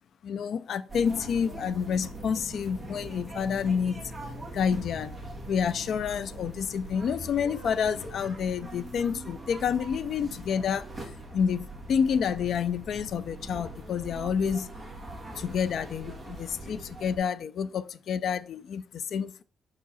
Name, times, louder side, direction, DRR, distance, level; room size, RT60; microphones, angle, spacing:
voice 1, 0.2-4.0 4.5-5.1 5.5-10.9 11.3-14.7 15.4-19.4, left 7 dB, 65° left, 0.4 m, -29 dB
sound 1, 0.9-17.2, right 1 dB, 5° right, 1.6 m, -42 dB
5.7 x 4.8 x 4.1 m
wide cardioid pair, 160°, 0 cm